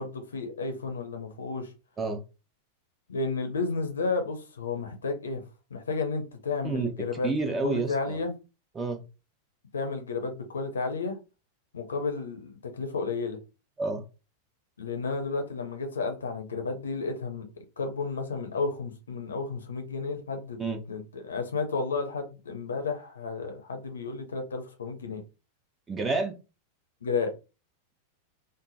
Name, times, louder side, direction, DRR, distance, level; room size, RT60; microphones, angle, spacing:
voice 1, 0.0-1.7 3.1-5.4 5.7-7.3 7.6-8.3 9.7-11.2 11.7-13.4 14.8-17.5 17.8-20.6 20.9-25.2 27.0-27.3, left 4 dB, 70° left, 0.8 m, -32 dB
voice 2, 7.2-8.2 8.7-9.0 13.8-14.0 20.6-20.8 25.9-26.4, right 3 dB, 15° right, 0.7 m, -29 dB
3.3 x 2.0 x 3.9 m
figure-of-eight pair, 90°, 0 cm